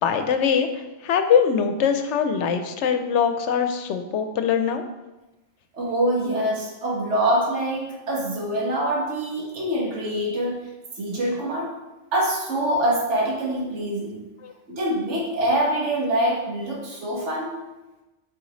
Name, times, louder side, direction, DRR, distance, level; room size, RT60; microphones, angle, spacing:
voice 1, 0.0-4.8 14.4-14.5, left 7 dB, 85° left, 8 dB, 0.9 m, -22 dB
voice 2, 5.7-10.5 11.0-11.7 12.1-14.2 14.7-17.5, right 1 dB, 85° right, -3 dB, 1.6 m, -24 dB
5.2 x 4.9 x 3.9 m, 1.1 s
omnidirectional pair, 1.2 m